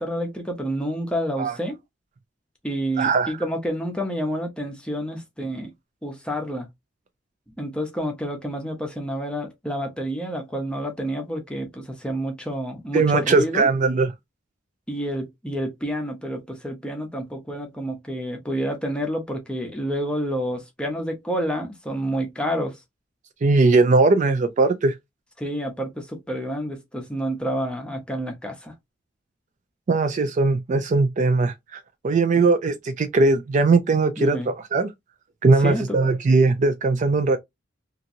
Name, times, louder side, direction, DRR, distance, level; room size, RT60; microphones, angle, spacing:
voice 1, 0.0-1.8 2.6-5.7 6.0-6.7 7.6-13.7 14.9-22.8 25.4-28.7 34.2-34.5 35.6-36.0, equal, 5° left, 0.7 m, -29 dB
voice 2, 3.0-3.3 12.9-14.1 23.4-25.0 29.9-34.9 35.4-37.4, right 3 dB, 40° right, 0.3 m, -20 dB
2.9 x 2.5 x 2.5 m
head